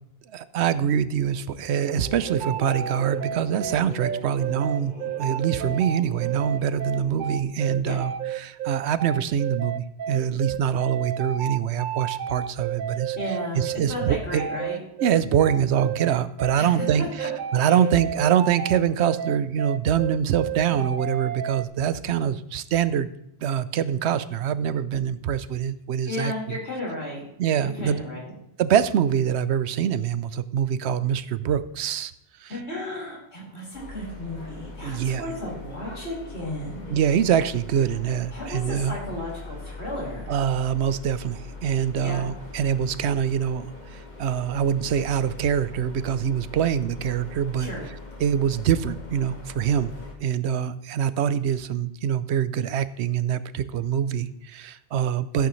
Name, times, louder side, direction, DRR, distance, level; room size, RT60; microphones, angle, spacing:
voice 1, 0.3-4.9 5.2-8.1 8.4-13.2 13.6-14.4 15.0-17.0 17.5-23.1 23.4-26.6 27.4-28.0 28.6-32.1 32.4-32.5 34.8-35.4 36.9-39.0 40.3-47.7 48.2-49.9 50.2-55.5, right 9 dB, 80° right, 14 dB, 0.9 m, -24 dB
sound 1, 1.9-7.4, right 2 dB, 40° right, 2.0 m, -42 dB
sound 2, 2.3-21.6, right 9 dB, 60° right, 0.6 m, -31 dB
voice 2, 13.1-13.6 13.9-14.8 16.6-17.3 17.7-17.8 26.1-27.2 27.6-28.3 32.5-36.9 38.3-40.3 42.0-42.3 47.6-47.8, left 1 dB, 75° left, -5 dB, 4.9 m, -34 dB
sound 3, 33.7-50.1, left 3 dB, 40° left, 1.8 m, -41 dB
15.0 x 8.2 x 3.1 m, 0.77 s
omnidirectional pair, 1.1 m